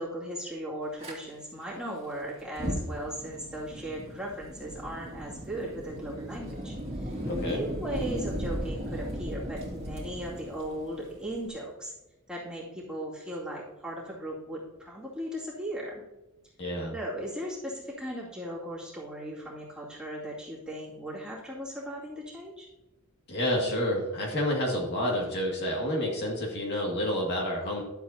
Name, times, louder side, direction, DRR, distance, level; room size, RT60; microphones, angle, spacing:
voice 1, 0.0-11.9 12.3-16.0 16.9-22.7, right 1 dB, 5° right, -7 dB, 2.4 m, -37 dB
Fire, 1.0-1.1 2.4-11.5, equal, 30° right, 2.3 m, -36 dB
voice 2, 7.3-7.6 16.6-16.9 23.3-27.8, left 1 dB, 50° left, -2 dB, 2.1 m, -29 dB
11.5 x 7.6 x 2.8 m, 1.0 s
head